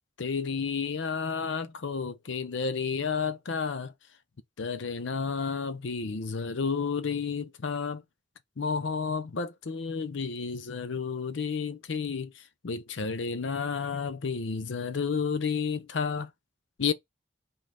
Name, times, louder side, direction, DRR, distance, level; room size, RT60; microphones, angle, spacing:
voice 1, 0.2-3.9 4.6-8.0 8.6-16.3 16.8-16.9, left 5 dB, 80° left, 0.6 m, -31 dB
5.2 x 2.3 x 3.5 m
head